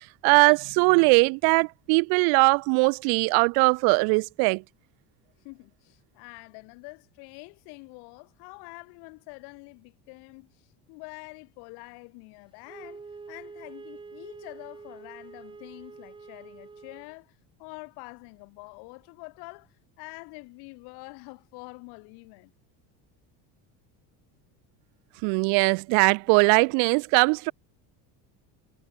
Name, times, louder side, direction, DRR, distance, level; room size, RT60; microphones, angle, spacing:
voice 1, 0.2-4.6 25.2-27.5, right 36 dB, 70° right, 0.6 m, -21 dB
voice 2, 5.4-22.5, left 32 dB, 75° left, 5.8 m, -46 dB
Wind instrument woodwind instrument, 12.7-17.1, right 4 dB, 10° right, 2.5 m, -46 dB
cardioid pair, 175°, 39 cm